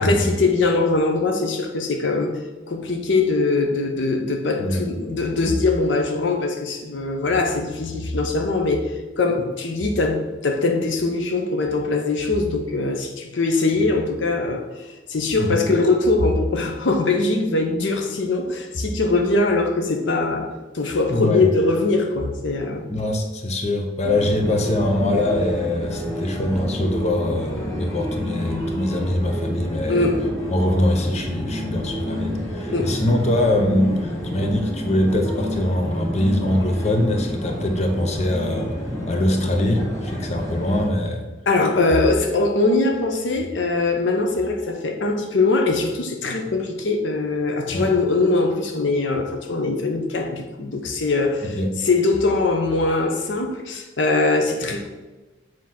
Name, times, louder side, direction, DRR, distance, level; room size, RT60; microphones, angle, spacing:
voice 1, 0.0-2.4 2.7-22.9 29.9-30.2 32.7-33.0 41.5-54.9, left 3 dB, 70° left, 0.7 m, -22 dB
voice 2, 21.1-21.5 22.9-30.1 30.5-38.7 39.0-41.3 47.7-47.9 51.4-51.7, left 1 dB, 35° left, 0.8 m, -23 dB
sound 1, 24.0-40.9, equal, 15° left, 1.6 m, -29 dB
7.4 x 3.0 x 5.8 m
head